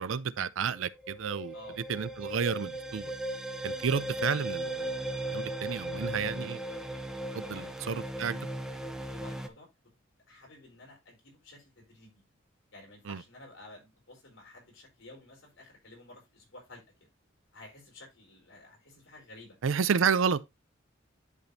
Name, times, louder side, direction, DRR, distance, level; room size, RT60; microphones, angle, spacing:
voice 1, 0.0-1.5 1.9-3.1 3.6-5.0 5.3-6.6 7.3-8.4 13.1-13.2 19.6-20.4, right 6 dB, 75° right, 0.5 m, -31 dB
sound 1, 0.8-9.5, right 1 dB, 5° right, 0.7 m, -37 dB
voice 2, 7.4-7.9 9.1-9.7 10.3-12.2 12.7-16.8 17.5-19.6, left 2 dB, 70° left, 4.4 m, -52 dB
10.5 x 5.2 x 2.7 m
head